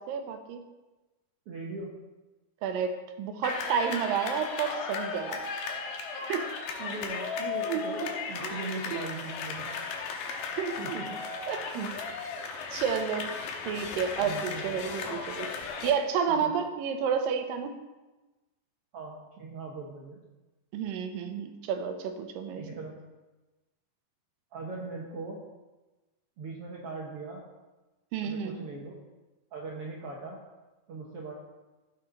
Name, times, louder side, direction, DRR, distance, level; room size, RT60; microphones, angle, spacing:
voice 1, 0.1-0.6 2.6-5.5 6.3-6.8 7.7-8.1 8.4-8.6 8.9-9.0 10.3-11.0 11.5-11.6 12.7-13.4 13.7-15.5 15.8-17.7 20.7-22.6 28.1-28.7, right 7 dB, 85° right, 6 dB, 2.6 m, -31 dB
voice 2, 1.5-1.9 6.4-8.0 8.3-9.8 10.5-11.2 11.7-11.9 14.2-14.7 16.3-16.5 18.9-20.2 22.5-22.9 24.5-25.4 26.4-27.4 28.2-28.9 29.5-30.4 30.9-31.3, right 3 dB, 65° right, -2 dB, 1.5 m, -40 dB
sound 1, 3.4-15.9, left 5 dB, 80° left, 2.6 m, -36 dB
14.0 x 6.0 x 3.9 m, 1.1 s
omnidirectional pair, 3.9 m